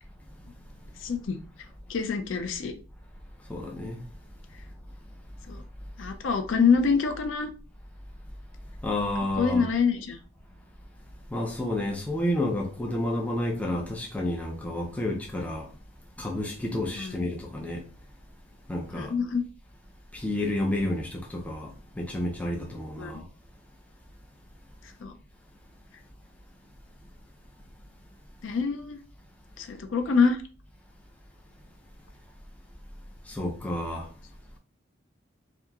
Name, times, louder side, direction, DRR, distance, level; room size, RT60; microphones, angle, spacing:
voice 1, 1.0-1.4 1.9-2.7 5.5-5.6 6.0-7.5 9.4-10.2 17.0-17.3 19.0-19.4 23.0-23.1 25.0-25.1 28.4-29.0 29.6-30.4, left 5 dB, 70° left, 0.4 m, -25 dB
voice 2, 3.5-4.0 8.8-9.7 11.3-15.7 16.2-17.8 18.7-19.1 20.1-23.3 33.3-34.1, left 1 dB, 5° left, 0.4 m, -30 dB
2.8 x 2.4 x 2.3 m
head